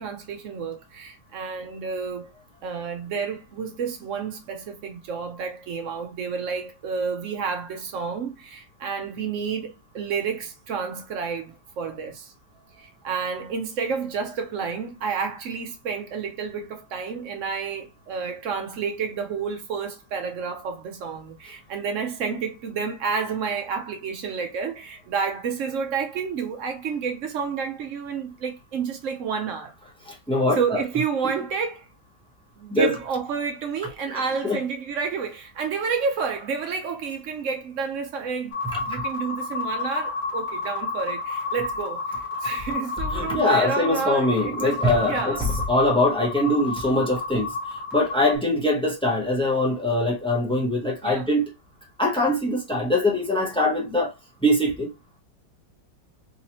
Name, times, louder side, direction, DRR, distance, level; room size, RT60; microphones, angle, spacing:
voice 1, 0.0-2.3 2.6-12.3 12.8-29.7 30.6-31.9 32.6-38.6 38.9-42.0 42.4-45.4 51.0-51.3, right 5 dB, 70° right, 0.7 m, -30 dB
voice 2, 30.1-30.8 32.7-33.0 34.1-34.6 38.9-39.0 43.1-51.4 52.0-54.1 54.4-54.9, left 1 dB, 5° left, 0.4 m, -23 dB
sound 1, 38.5-48.4, left 3 dB, 75° left, 1.9 m, -31 dB
3.9 x 2.7 x 2.9 m
omnidirectional pair, 2.0 m